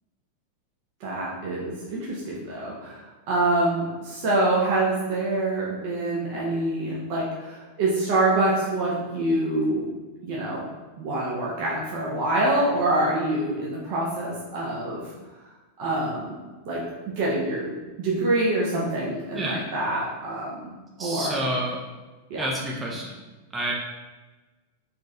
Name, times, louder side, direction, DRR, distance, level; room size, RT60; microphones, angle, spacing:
voice 1, 1.0-3.0 3.3-9.8 10.2-10.6 11.0-15.1 15.8-16.3 16.6-16.8 17.2-21.4 22.3-22.5, right 2 dB, 45° right, -5 dB, 0.9 m, -26 dB
voice 2, 19.3-19.6 21.0-21.8 22.4-23.1 23.5-23.7, right 1 dB, 15° right, -3 dB, 0.7 m, -29 dB
4.5 x 3.7 x 3.2 m, 1.2 s
figure-of-eight pair, 90°, 0 cm